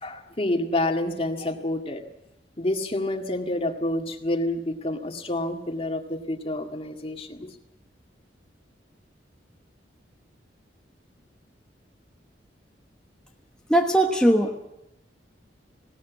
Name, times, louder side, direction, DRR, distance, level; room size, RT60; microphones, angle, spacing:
voice 1, 0.0-2.0 2.6-7.5, left 1 dB, 35° left, 4 dB, 2.0 m, -28 dB
voice 2, 13.7-14.6, right 1 dB, 5° left, 0 dB, 1.2 m, -20 dB
20.0 x 17.5 x 8.3 m, 0.86 s
head